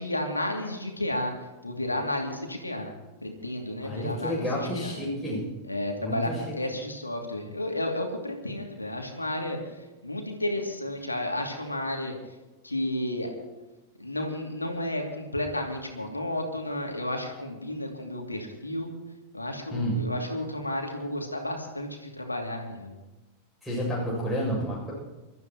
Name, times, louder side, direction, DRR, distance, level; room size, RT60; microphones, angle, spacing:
voice 1, 0.0-1.3 1.6-2.9 3.2-5.0 5.7-9.7 10.0-12.1 12.6-13.3 14.0-19.0 19.3-23.0, left 1 dB, 85° left, 2 dB, 2.7 m, -32 dB
voice 2, 3.8-5.4 6.0-6.5 19.7-20.0 23.6-24.9, equal, 5° left, -6 dB, 7.1 m, -30 dB
29.0 x 13.5 x 3.1 m, 1.1 s
figure-of-eight pair, 90°, 0 cm